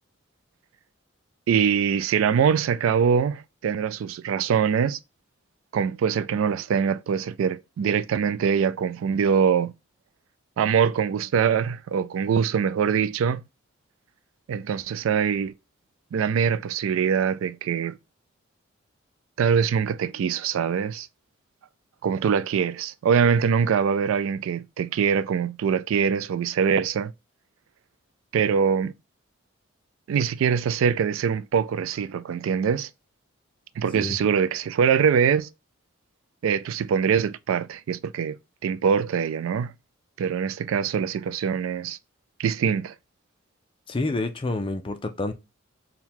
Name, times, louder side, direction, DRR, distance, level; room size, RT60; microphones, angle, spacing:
voice 1, 1.5-5.0 5.7-9.7 10.6-13.4 14.5-15.5 16.1-18.0 19.4-21.1 22.0-27.1 28.3-28.9 30.1-32.9 33.8-35.5 36.4-38.4 38.6-39.7 40.2-42.0 42.4-42.9, right 7 dB, 80° right, 0.3 m, -23 dB
voice 2, 43.9-45.3, left 2 dB, 25° left, 0.4 m, -28 dB
4.4 x 2.3 x 3.6 m
head